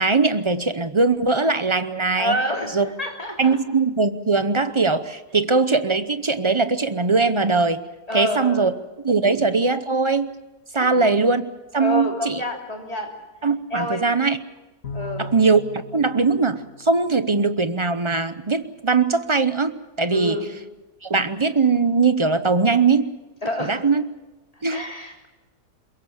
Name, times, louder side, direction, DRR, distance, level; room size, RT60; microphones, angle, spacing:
voice 1, 0.0-2.4 2.7-2.9 3.4-7.8 8.1-8.7 9.0-10.3 10.7-11.4 11.7-12.4 13.4-14.4 15.2-15.6 15.9-20.4 21.0-23.1 23.6-24.0 24.6-24.8, right 4 dB, 35° right, 11 dB, 0.4 m, -20 dB
voice 2, 2.2-3.6 8.1-8.7 9.2-9.4 10.8-11.1 11.8-13.1 13.7-14.1 14.9-15.3 20.1-20.5 23.4-23.8 24.7-25.3, equal, 20° left, 1 dB, 3.4 m, -28 dB
Bowed string instrument, 14.8-17.5, left 1 dB, 55° left, 2.9 m, -37 dB
22.5 x 22.5 x 7.4 m, 1.1 s
omnidirectional pair, 1.7 m